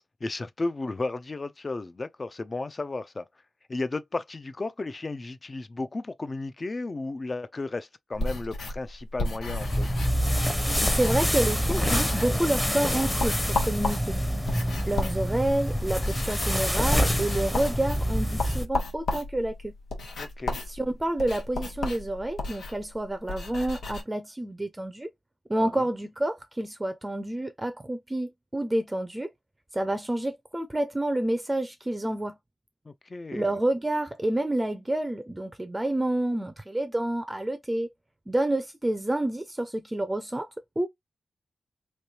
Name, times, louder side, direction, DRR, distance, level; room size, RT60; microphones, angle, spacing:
voice 1, 0.0-3.3 3.7-9.9 20.2-20.6 25.6-25.9 32.8-33.5, left 3 dB, 35° left, 0.5 m, -34 dB
sound 1, 8.1-11.4 11.7-12.4 12.8-24.0, left 2 dB, 85° left, 1.1 m, -34 dB
sound 2, 9.6-18.7, equal, 15° left, 0.8 m, -26 dB
voice 2, 10.8-14.1 14.9-19.7 20.7-25.1 25.5-29.3 29.7-32.4 33.3-37.9 38.3-40.5 40.8-40.9, right 1 dB, 15° right, 0.5 m, -29 dB
3.2 x 2.7 x 2.8 m
cardioid pair, 80°, 0 cm